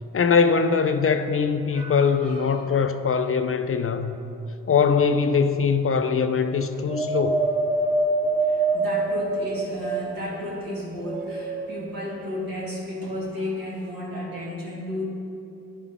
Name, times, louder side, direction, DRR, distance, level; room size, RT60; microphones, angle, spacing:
voice 1, 0.1-4.2 4.7-7.5, left 5 dB, 40° left, 9 dB, 0.4 m, -22 dB
voice 2, 1.7-2.7 8.4-15.0, left 1 dB, 85° right, -5 dB, 1.6 m, -33 dB
Wind, 6.9-10.4 11.0-12.0 12.8-12.9, right 3 dB, 15° right, 0.8 m, -25 dB
10.5 x 4.0 x 3.6 m, 2.8 s
cardioid pair, 45°, 35 cm